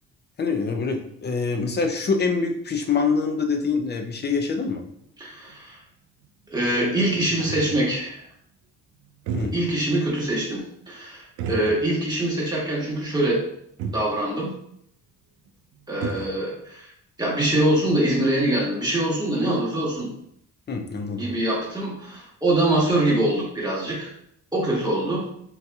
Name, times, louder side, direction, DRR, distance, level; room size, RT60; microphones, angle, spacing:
voice 1, 0.4-4.8 9.3-9.5 20.7-21.3, left 4 dB, 35° left, 4 dB, 0.5 m, -25 dB
sound 1, 5.0-5.1 5.5-5.6 6.2-6.3 6.6-8.0 9.1-9.9 10.2-10.3 11.4-12.2 12.5-12.6 13.5-13.6 13.8-14.1 15.5-15.6 15.7-16.4, right 5 dB, 85° right, 0.5 m, -33 dB
voice 2, 5.2-5.8 6.5-8.2 9.5-13.4 13.9-14.5 15.9-16.9 17.2-20.1 21.1-24.1 24.5-25.2, right 1 dB, 15° right, -6 dB, 1.3 m, -24 dB
3.9 x 2.6 x 2.3 m, 0.70 s
cardioid pair, 90°, 30 cm